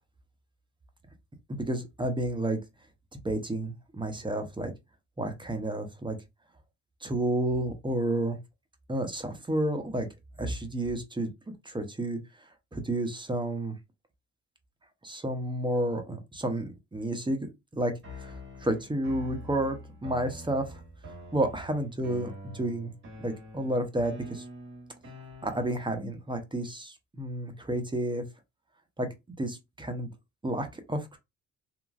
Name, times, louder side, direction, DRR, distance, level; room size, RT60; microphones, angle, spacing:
voice 1, 1.5-2.6 3.2-4.7 5.2-6.2 7.0-8.4 8.9-10.1 10.4-11.3 11.6-12.2 12.7-13.8 15.0-20.8 21.3-22.9 23.2-24.4 25.4-28.2 29.0-29.1 29.4-30.1 30.4-31.2, right 1 dB, 15° right, 0.7 m, -31 dB
sound 1, 18.0-26.0, equal, 40° right, 1.5 m, -45 dB
2.9 x 2.5 x 2.4 m
cardioid pair, 90°, 30 cm